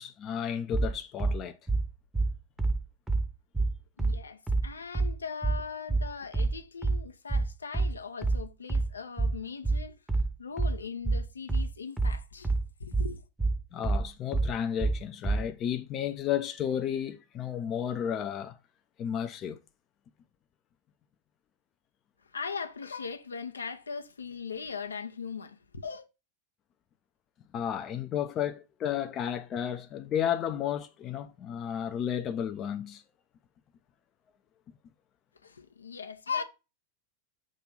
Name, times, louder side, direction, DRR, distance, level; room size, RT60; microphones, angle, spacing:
voice 1, 0.0-1.6 13.7-18.6 19.0-19.6 27.5-33.0, left 9 dB, 30° left, 0.6 m, -32 dB
sound 1, 0.7-15.5, right 3 dB, 5° right, 0.9 m, -28 dB
voice 2, 4.0-10.0 10.4-12.5 12.8-13.2 22.2-26.0 35.4-36.4, left 5 dB, 75° left, 0.8 m, -39 dB
6.2 x 3.4 x 5.5 m
figure-of-eight pair, 90°, 0 cm